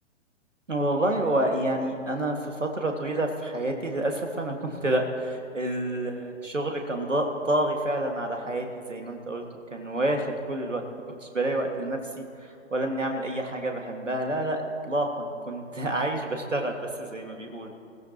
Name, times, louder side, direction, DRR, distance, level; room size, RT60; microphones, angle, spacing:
voice 1, 0.7-9.4 9.7-17.7, right 1 dB, 85° right, 3 dB, 2.1 m, -28 dB
20.0 x 16.5 x 3.0 m, 2.3 s
figure-of-eight pair, 115°, 36 cm